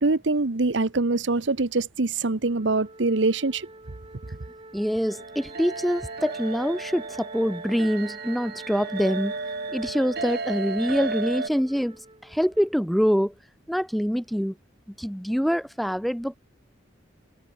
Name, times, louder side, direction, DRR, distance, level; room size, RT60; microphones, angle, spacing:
voice 1, 0.0-3.7, right 3 dB, 80° right, 1.1 m, -24 dB
Wind instrument woodwind instrument, 2.4-12.8, right 3 dB, 30° right, 5.0 m, -46 dB
voice 2, 4.7-9.3 9.7-12.0 12.2-13.3 13.7-14.5 15.0-16.4, equal, ahead, 0.9 m, -25 dB
sound 1, 5.1-11.5, right 3 dB, 60° right, 3.0 m, -34 dB
head